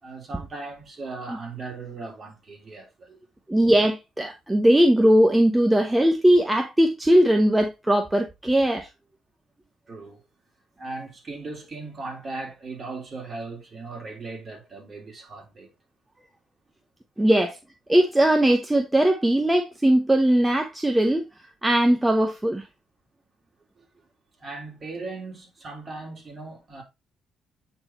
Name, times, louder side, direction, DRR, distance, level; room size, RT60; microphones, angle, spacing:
voice 1, 0.0-3.2 9.9-10.2 10.8-15.7 17.2-17.3 23.8-23.9 24.4-26.8, right 3 dB, 40° right, 3.4 m, -38 dB
voice 2, 3.5-8.9 17.2-17.6 17.9-21.3 21.6-22.6, right 1 dB, 10° right, 0.9 m, -19 dB
8.7 x 4.1 x 2.9 m
cardioid pair, 90°, 0 cm